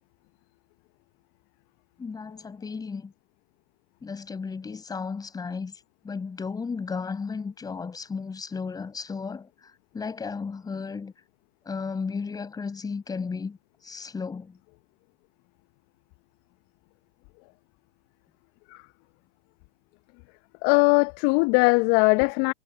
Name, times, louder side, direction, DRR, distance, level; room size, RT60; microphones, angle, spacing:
voice 1, 2.0-3.1 4.0-9.5 9.9-11.1 11.6-13.6 13.8-14.6, left 5 dB, 10° left, 6.5 m, -34 dB
voice 2, 20.6-22.5, left 31 dB, 35° left, 1.0 m, -20 dB
figure-of-eight pair, 110°, 31 cm